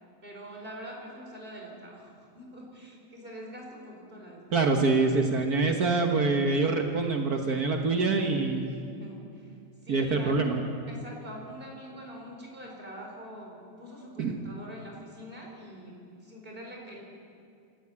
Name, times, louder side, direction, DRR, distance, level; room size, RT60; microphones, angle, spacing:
voice 1, 0.2-4.7 8.7-9.5 9.8-10.5 10.9-17.0, equal, 30° right, -1 dB, 4.8 m, -44 dB
voice 2, 4.5-8.7 9.9-10.6 14.2-14.4, right 3 dB, 60° right, 3 dB, 1.8 m, -25 dB
26.5 x 13.5 x 8.4 m, 2.4 s
omnidirectional pair, 1.9 m